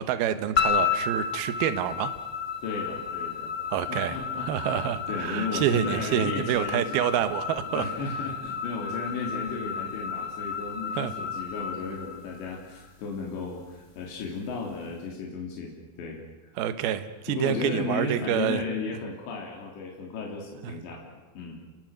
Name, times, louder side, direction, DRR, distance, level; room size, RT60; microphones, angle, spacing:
voice 1, 0.0-2.1 3.7-7.8 11.0-11.1 16.6-18.6 20.6-20.7, right 11 dB, 70° right, 11 dB, 2.9 m, -27 dB
sound 1, 0.6-12.9, left 7 dB, 20° left, 3.2 m, -32 dB
voice 2, 2.6-6.8 7.7-15.7 16.0-16.2 17.3-21.6, left 4 dB, 80° left, -1 dB, 5.5 m, -35 dB
29.5 x 22.5 x 6.5 m, 1.2 s
omnidirectional pair, 5.0 m